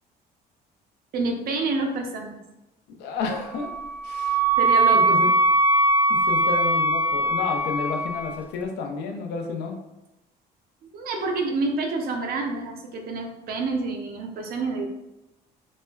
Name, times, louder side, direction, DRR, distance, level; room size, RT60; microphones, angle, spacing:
voice 1, 1.1-2.4 4.6-5.2 10.9-14.9, right 3 dB, 65° right, 3 dB, 0.6 m, -28 dB
voice 2, 2.9-3.7 4.0-4.4 4.9-5.3 6.1-9.8, left 4 dB, 85° left, 2 dB, 0.6 m, -31 dB
Wind instrument woodwind instrument, 3.5-8.3, right 2 dB, 10° right, 0.4 m, -21 dB
4.2 x 2.1 x 2.3 m, 0.94 s
cardioid pair, 110°, 17 cm